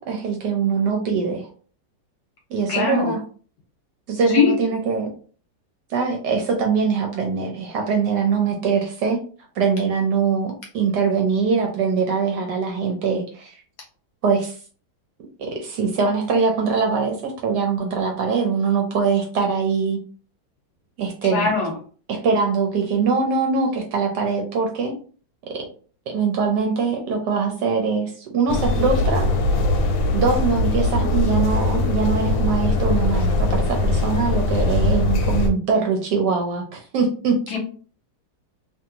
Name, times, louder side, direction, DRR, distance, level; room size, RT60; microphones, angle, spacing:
voice 1, 0.0-1.5 2.5-3.2 4.1-5.1 5.9-9.2 9.6-13.6 14.2-14.6 15.4-20.0 21.0-21.5 22.1-24.9 26.1-29.3 30.1-37.4, right 5 dB, 70° right, 2 dB, 1.1 m, -22 dB
voice 2, 2.7-3.1 4.3-4.6 21.2-21.7 37.5-37.6, left 5 dB, 65° left, 1 dB, 1.1 m, -21 dB
sound 1, 28.5-35.5, left 2 dB, 90° left, 1.4 m, -21 dB
2.8 x 2.6 x 2.7 m, 0.41 s
omnidirectional pair, 2.1 m